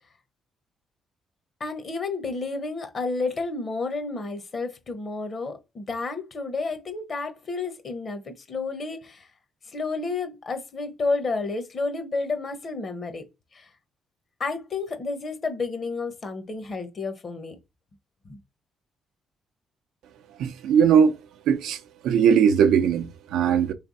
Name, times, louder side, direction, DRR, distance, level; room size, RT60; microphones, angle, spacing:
voice 1, 1.6-9.3 9.7-13.2 13.5-13.7 14.4-17.6 18.2-18.4, left 3 dB, 45° left, 1.0 m, -31 dB
voice 2, 20.4-21.2 21.5-23.7, right 7 dB, 85° right, 0.5 m, -20 dB
3.3 x 3.3 x 4.0 m
cardioid pair, 90°, 0 cm